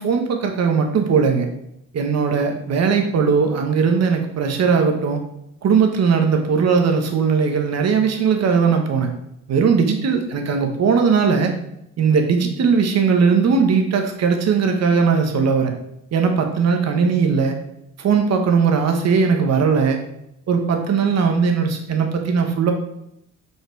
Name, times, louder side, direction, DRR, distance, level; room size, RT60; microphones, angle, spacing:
voice 1, 0.0-1.5 1.9-5.2 5.6-9.1 9.5-11.5 12.0-15.7 16.1-17.6 18.0-20.0 20.5-22.7, right 5 dB, 60° right, 4 dB, 1.2 m, -18 dB
5.9 x 5.6 x 4.6 m, 0.78 s
cardioid pair, 90°, 30 cm